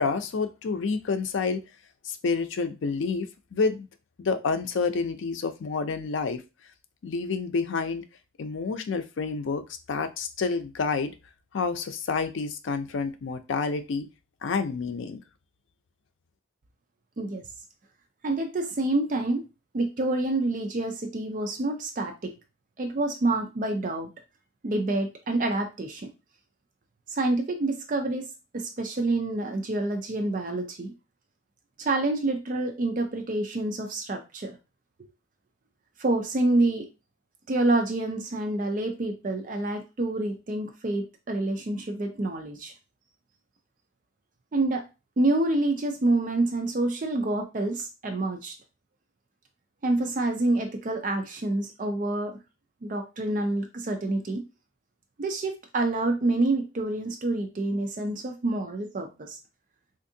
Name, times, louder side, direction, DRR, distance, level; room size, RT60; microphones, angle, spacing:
voice 1, 0.0-1.6 2.0-3.3 3.5-3.9 4.2-6.4 7.0-8.0 8.4-9.6 9.9-11.1 11.5-14.1 14.4-15.2, left 4 dB, 85° left, 8 dB, 0.4 m, -28 dB
voice 2, 18.2-19.4 19.7-22.3 22.8-24.1 24.6-26.1 27.1-28.3 28.5-30.9 31.8-34.6 36.0-36.9 37.5-42.7 44.5-44.9 45.2-48.5 49.8-52.4 52.8-54.4 55.2-59.4, right 2 dB, 45° right, 5 dB, 0.4 m, -27 dB
3.5 x 2.5 x 2.6 m, 0.27 s
head